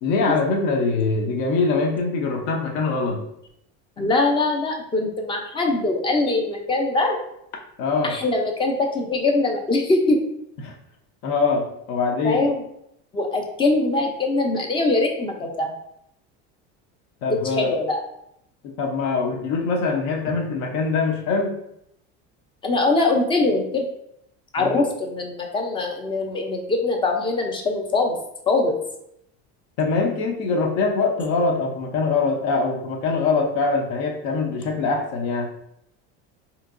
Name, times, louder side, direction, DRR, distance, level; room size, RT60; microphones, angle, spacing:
voice 1, 0.0-3.3 7.8-8.1 10.6-10.8 11.2-12.4 17.2-17.7 18.8-21.6 24.6-24.9 29.8-35.5, left 4 dB, 70° left, 1 dB, 0.8 m, -23 dB
voice 2, 4.0-7.2 8.0-10.2 12.2-12.6 13.1-15.7 17.6-18.0 22.6-23.8 24.5-28.2 28.5-28.8, left 2 dB, 15° left, 3 dB, 0.4 m, -22 dB
4.4 x 2.9 x 2.5 m, 0.77 s
cardioid pair, 150°, 33 cm